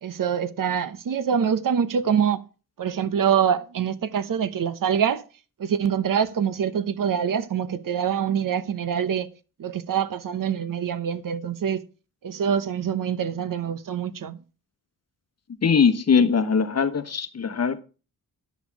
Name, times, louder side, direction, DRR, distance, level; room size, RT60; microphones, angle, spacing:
voice 1, 0.0-2.4 2.8-5.2 5.6-9.3 9.6-11.8 12.2-14.4, right 8 dB, 65° right, 0.9 m, -25 dB
voice 2, 15.6-17.8, left 6 dB, 45° left, 1.2 m, -21 dB
10.5 x 8.1 x 4.7 m
wide cardioid pair, 105°, 35 cm